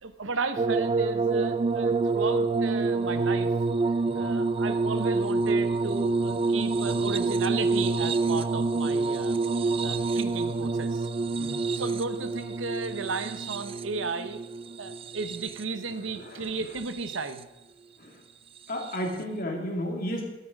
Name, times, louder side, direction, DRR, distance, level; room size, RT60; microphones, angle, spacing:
voice 1, 0.0-3.5 4.1-11.1 11.7-14.4 14.8-17.5, right 4 dB, 75° right, 10 dB, 0.9 m, -34 dB
sound 1, 0.6-15.8 16.7-17.4 18.8-19.0, right 3 dB, 30° right, 0.3 m, -27 dB
voice 2, 11.4-11.8 16.1-16.5 18.0-18.2 18.7-20.2, equal, 50° left, 1 dB, 2.4 m, -33 dB
12.5 x 8.6 x 5.1 m, 1.0 s
head